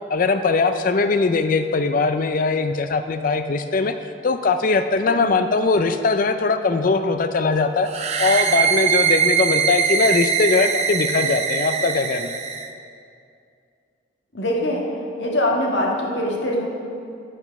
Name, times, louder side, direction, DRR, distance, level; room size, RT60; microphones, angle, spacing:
voice 1, 0.1-3.9 4.2-7.9 8.2-12.4, left 4 dB, 45° left, 9 dB, 0.4 m, -20 dB
voice 2, 5.1-5.4 14.3-14.8 15.2-16.7, left 1 dB, 70° left, -2 dB, 1.6 m, -23 dB
sound 1, 7.9-12.7, right 7 dB, 35° right, 0.6 m, -22 dB
12.0 x 6.0 x 5.9 m, 2.4 s
head